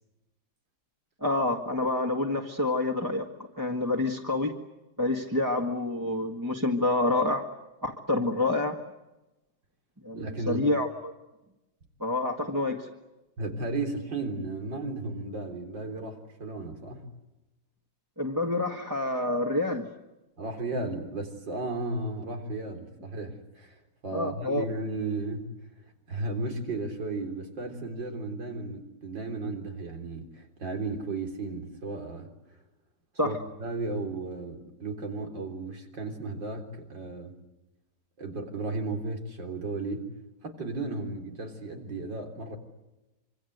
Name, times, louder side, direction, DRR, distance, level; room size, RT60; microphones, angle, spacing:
voice 1, 1.2-3.3 3.6-4.6 5.0-7.4 7.8-8.8 10.0-11.1 12.0-12.9 18.2-19.8 24.1-24.6 33.2-33.4, left 2 dB, 10° right, 0 dB, 1.7 m, -27 dB
voice 2, 10.1-10.7 13.4-17.1 20.4-23.8 24.0-25.5 26.1-32.3 33.2-37.4 38.2-40.1 40.4-42.6, right 2 dB, 80° right, 4 dB, 4.4 m, -34 dB
26.5 x 26.0 x 8.1 m, 0.99 s
omnidirectional pair, 2.0 m